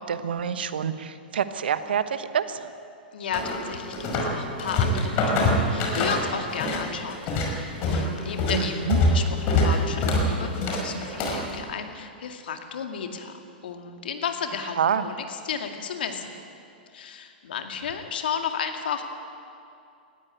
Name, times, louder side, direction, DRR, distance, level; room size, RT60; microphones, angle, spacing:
voice 1, 0.1-2.7 8.5-9.0 14.8-15.0, right 8 dB, 70° right, 12 dB, 1.2 m, -27 dB
voice 2, 3.1-7.5 7.8-14.8 15.0-16.4 16.9-19.0, left 7 dB, 70° left, 5 dB, 2.2 m, -33 dB
sound 1, 3.3-4.3 4.6-6.8 7.1-11.5, left 2 dB, 40° left, 5.2 m, -24 dB
19.5 x 15.0 x 9.2 m, 2.5 s
hypercardioid pair, 110°, 5 cm